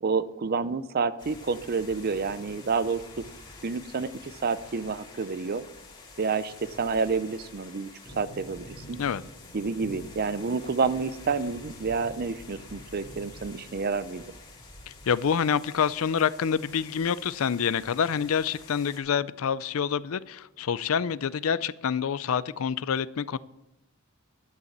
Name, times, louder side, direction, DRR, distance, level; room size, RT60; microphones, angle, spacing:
voice 1, 0.0-3.2 3.6-5.6 6.2-7.9 8.1-9.0 9.5-14.2, right 4 dB, 45° right, 14 dB, 0.6 m, -29 dB
sound 1, 1.2-19.0, left 2 dB, 25° left, 2.8 m, -47 dB
voice 2, 14.9-23.4, left 7 dB, 70° left, 17 dB, 0.4 m, -27 dB
11.0 x 6.8 x 7.3 m, 0.89 s
head